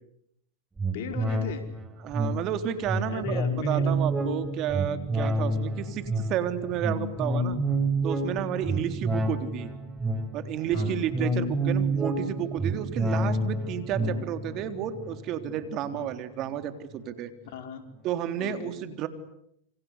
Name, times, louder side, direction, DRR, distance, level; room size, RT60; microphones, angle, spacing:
sound 1, 0.8-16.5 16.9-17.0, right 2 dB, 15° right, 5.7 m, -29 dB
voice 1, 0.9-1.6 3.1-4.0 5.1-5.4 8.7-8.9 10.7-11.1 14.0-14.3 15.9-16.1 17.4-17.9 18.4-18.7, left 7 dB, 65° left, 6 dB, 5.0 m, -38 dB
voice 2, 2.0-7.6 8.0-9.7 10.3-17.3 18.0-19.1, right 10 dB, 45° right, 9 dB, 3.7 m, -31 dB
28.0 x 26.0 x 8.2 m, 0.75 s
hypercardioid pair, 105°, 0 cm